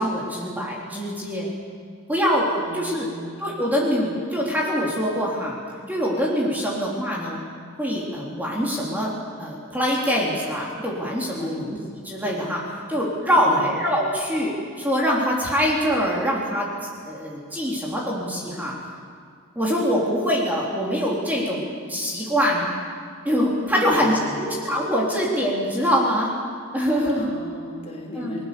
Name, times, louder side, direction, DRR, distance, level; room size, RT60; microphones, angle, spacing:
voice 1, 0.0-1.5 2.1-3.1 3.4-5.6 5.9-7.4 7.8-9.1 9.4-11.8 12.0-12.6 12.9-16.7 17.1-18.7 19.6-22.7 23.2-26.3 26.7-27.3 28.2-28.3, equal, 10° right, -4 dB, 4.0 m, -24 dB
voice 2, 2.5-3.3 11.4-11.6 13.4-13.7 23.7-24.4 27.2-28.5, left 1 dB, 30° left, -3 dB, 5.3 m, -35 dB
30.0 x 20.5 x 7.2 m, 2.2 s
head